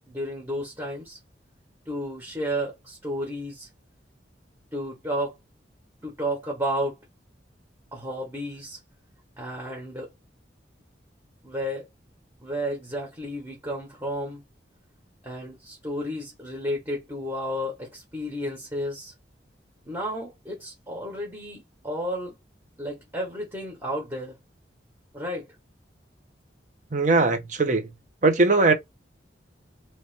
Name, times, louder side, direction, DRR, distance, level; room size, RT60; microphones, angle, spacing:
voice 1, 0.1-1.2 1.8-3.7 4.7-5.4 6.0-7.0 7.9-8.8 9.4-10.1 11.4-11.9 12.4-14.4 15.2-19.1 19.8-22.3 22.8-24.4 25.1-25.5, equal, 15° right, 1.4 m, -32 dB
voice 2, 26.9-27.9 28.2-28.7, right 3 dB, 45° right, 0.8 m, -20 dB
3.1 x 2.9 x 4.3 m
head